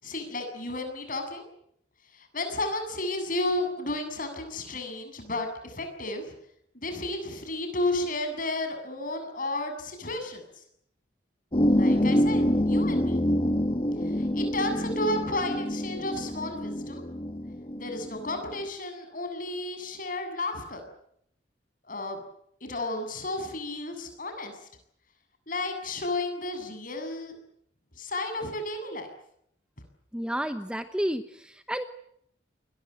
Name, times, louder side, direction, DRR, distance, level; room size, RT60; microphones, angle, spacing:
voice 1, 0.0-1.4 2.1-6.3 6.7-10.4 11.6-13.2 14.0-17.0 17.8-20.8 21.9-22.2 22.6-24.7 25.5-27.4 28.0-29.1, left 2 dB, 45° left, 7 dB, 7.5 m, -32 dB
sound 1, 11.5-18.5, equal, 30° left, 1.3 m, -26 dB
voice 2, 30.1-31.8, equal, 5° right, 9 dB, 1.0 m, -31 dB
28.5 x 22.5 x 7.9 m, 0.71 s
head